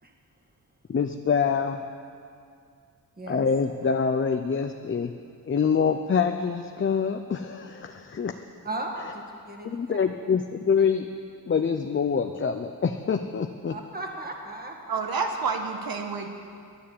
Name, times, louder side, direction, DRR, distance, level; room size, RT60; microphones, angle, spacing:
voice 1, 0.9-1.8 3.3-5.1 5.5-8.4 9.6-11.1 11.5-13.8, left 6 dB, 30° left, 6 dB, 0.6 m, -25 dB
voice 2, 3.2-3.5 8.6-10.1 13.7-15.0, right 2 dB, 25° right, 1 dB, 2.0 m, -36 dB
voice 3, 14.9-16.3, right 5 dB, 65° right, 5 dB, 1.5 m, -29 dB
11.5 x 10.0 x 8.5 m, 2.4 s
cardioid pair, 85°, 38 cm